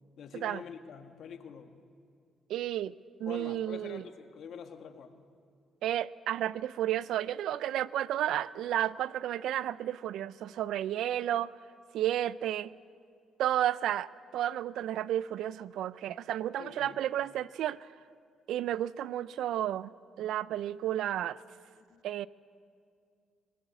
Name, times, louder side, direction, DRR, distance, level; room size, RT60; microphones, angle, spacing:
voice 1, 0.2-1.8 3.3-5.2 16.6-16.9 21.9-22.0, left 7 dB, 65° left, 1.8 m, -46 dB
voice 2, 2.5-2.9 3.2-4.1 5.8-11.5 11.9-12.7 13.4-17.9 18.5-21.4 22.0-22.3, right 12 dB, 80° right, 0.5 m, -32 dB
24.0 x 18.5 x 8.3 m
cardioid pair, 90°, 0 cm